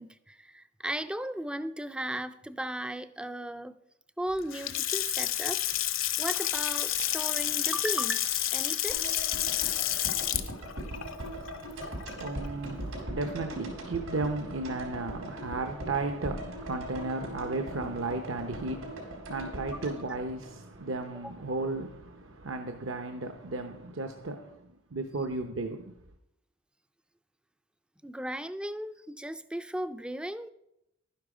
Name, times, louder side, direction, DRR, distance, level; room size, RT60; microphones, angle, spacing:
voice 1, 0.0-3.7 4.2-5.6 6.2-9.2 21.1-21.3 28.0-30.5, right 1 dB, 5° right, 0.3 m, -36 dB
Water tap faucet / Sink (filling or washing) / Splash splatter, 4.4-12.5, left 12 dB, 65° left, 0.8 m, -30 dB
sound 1, 8.9-21.1 21.3-21.4, right 1 dB, 85° right, 4.7 m, -40 dB
voice 2, 11.4-25.8, right 3 dB, 65° right, 0.7 m, -35 dB
12.0 x 10.0 x 4.9 m
head